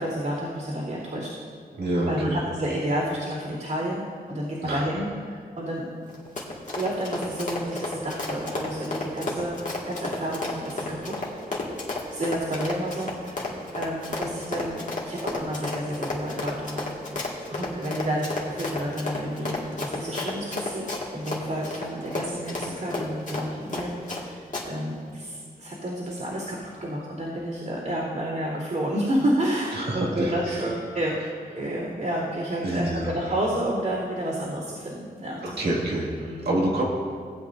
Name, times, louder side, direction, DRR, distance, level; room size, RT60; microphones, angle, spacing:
voice 1, 0.0-1.4 2.1-4.0 4.3-6.0 6.7-9.6 9.9-11.2 12.1-16.9 17.2-20.8 21.1-31.2 31.5-35.7 36.2-36.6, right 1 dB, 65° right, -12 dB, 2.9 m, -30 dB
voice 2, 1.7-2.4 4.6-4.8 29.7-30.6 32.6-33.1 35.4-36.8, right 1 dB, 90° right, -4 dB, 2.1 m, -27 dB
Run, 6.1-24.2 24.5-24.6, left 2 dB, 50° left, 2.0 m, -32 dB
17.5 x 8.3 x 2.6 m, 2.1 s
wide cardioid pair, 80°, 16 cm